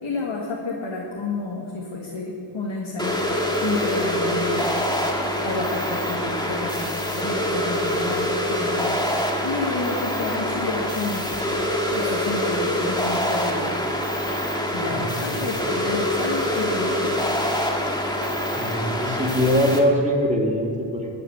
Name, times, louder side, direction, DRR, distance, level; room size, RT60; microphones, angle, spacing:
voice 1, 0.0-3.4 3.6-4.7 5.4-8.9 9.4-11.3 11.9-13.7 14.7-17.3, left 3 dB, 90° left, -3 dB, 1.8 m, -30 dB
sound 1, 3.0-19.8, left 1 dB, 10° left, 2.1 m, -25 dB
voice 2, 14.9-15.4 18.5-21.1, equal, 15° right, -1 dB, 3.1 m, -22 dB
19.0 x 8.0 x 8.0 m, 2.3 s
wide cardioid pair, 55°, 46 cm